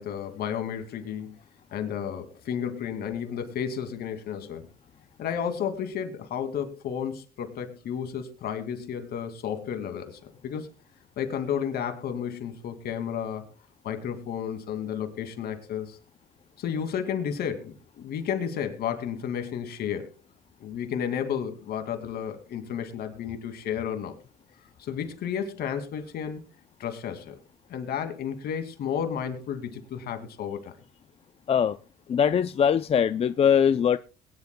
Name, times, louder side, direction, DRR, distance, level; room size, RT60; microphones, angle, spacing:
voice 1, 0.0-1.3 1.7-4.7 5.2-10.7 11.2-13.4 13.8-16.0 16.6-20.1 20.6-24.1 24.8-26.4 26.8-27.4 27.7-30.7, left 8 dB, 65° left, 7 dB, 2.4 m, -32 dB
voice 2, 32.1-34.0, left 8 dB, 35° left, 12 dB, 0.5 m, -21 dB
22.0 x 10.5 x 2.3 m, 0.34 s
cardioid pair, 110°, 17 cm